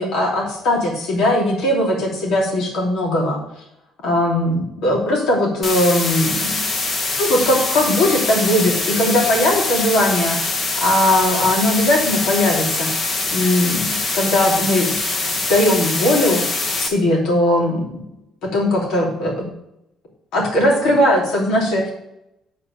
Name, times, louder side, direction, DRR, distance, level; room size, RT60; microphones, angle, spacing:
voice 1, 0.0-3.4 4.0-6.6 7.2-10.4 10.7-14.9 15.5-17.9 18.5-19.3 20.3-21.9, left 1 dB, 75° left, -2 dB, 3.2 m, -19 dB
sound 1, 5.6-16.9, left 3 dB, 35° left, 1.1 m, -23 dB
7.6 x 4.8 x 7.2 m, 0.85 s
cardioid pair, 155°, 0 cm